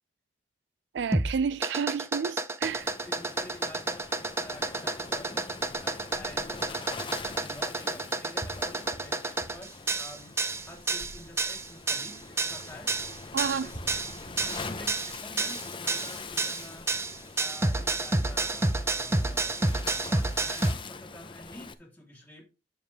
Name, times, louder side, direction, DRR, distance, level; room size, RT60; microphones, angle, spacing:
voice 1, 0.9-2.9 13.3-13.7, right 6 dB, 80° right, 0.4 m, -30 dB
sound 1, 1.0-20.7, right 2 dB, 15° right, 0.5 m, -30 dB
Waves surf, 2.6-21.7, left 4 dB, 30° left, 0.8 m, -43 dB
voice 2, 3.0-5.4 5.8-12.9 13.4-14.0 14.4-16.9 17.4-22.4, left 1 dB, 10° left, 3.4 m, -49 dB
sound 2, 6.4-6.5 7.8-7.9 8.4-9.7 10.2-10.8 11.8-11.9 13.1-13.2 13.7-15.1 15.6-16.1, right 1 dB, 50° right, 4.0 m, -47 dB
8.7 x 7.2 x 3.5 m
head